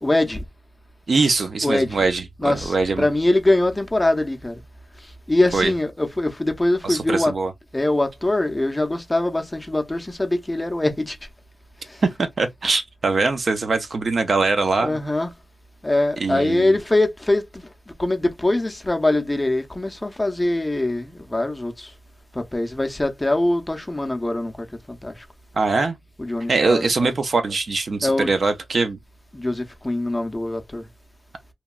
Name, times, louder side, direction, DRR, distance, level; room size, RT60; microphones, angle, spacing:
voice 1, 0.0-0.4 1.6-2.0 2.4-4.6 5.3-7.3 7.7-11.2 11.9-12.0 14.8-15.3 15.8-17.6 18.0-21.9 22.3-25.2 26.2-27.1 28.0-28.3 29.3-30.9, left 2 dB, 15° left, 0.5 m, -23 dB
voice 2, 1.1-3.1 5.5-5.7 6.8-7.5 12.0-15.0 16.2-16.7 25.5-26.0 26.5-29.0, right 3 dB, 55° right, 0.5 m, -22 dB
2.9 x 2.2 x 2.3 m
wide cardioid pair, 105°, 0 cm